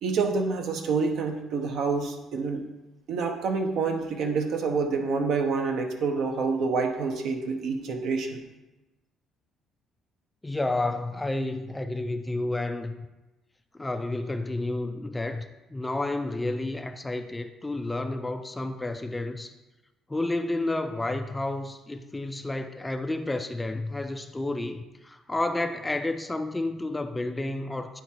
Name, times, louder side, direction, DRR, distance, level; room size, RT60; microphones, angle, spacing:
voice 1, 0.0-2.6 3.1-8.4, right 4 dB, 65° right, 4 dB, 1.0 m, -27 dB
voice 2, 10.4-12.9 13.7-19.5 20.1-28.0, left 2 dB, 10° left, 8 dB, 0.4 m, -30 dB
9.3 x 3.6 x 4.4 m, 1.0 s
cardioid pair, 125°, 0 cm